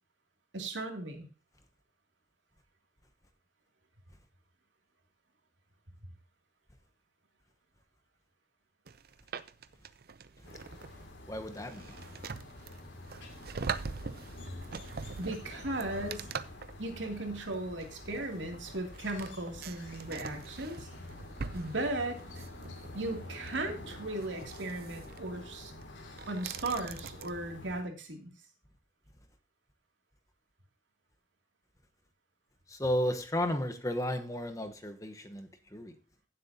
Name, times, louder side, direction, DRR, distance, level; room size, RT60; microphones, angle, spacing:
voice 1, 0.5-1.3 15.2-16.3 16.8-20.9 21.5-22.4 22.9-25.7 26.3-28.3, right 2 dB, 85° right, 2.7 m, -37 dB
sound 1, 8.9-27.3, right 5 dB, 55° right, 0.6 m, -44 dB
sound 2, 10.4-27.8, left 1 dB, 90° left, 2.4 m, -48 dB
voice 2, 11.3-12.0 32.7-36.0, left 1 dB, 20° left, 1.1 m, -34 dB
16.0 x 7.7 x 2.8 m
head